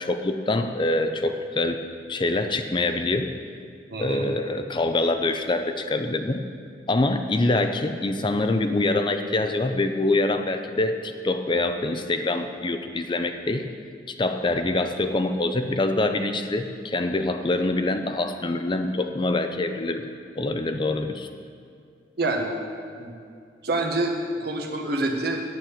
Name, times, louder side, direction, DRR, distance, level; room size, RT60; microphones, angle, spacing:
voice 1, 0.0-1.8 2.1-3.3 4.0-6.4 6.9-13.7 14.1-20.0 20.4-21.3, left 2 dB, 25° left, 7 dB, 0.5 m, -25 dB
voice 2, 3.9-4.3 22.2-22.5 23.0-23.1 23.6-25.4, right 2 dB, 60° right, 1 dB, 1.4 m, -27 dB
9.1 x 8.7 x 7.3 m, 2.3 s
head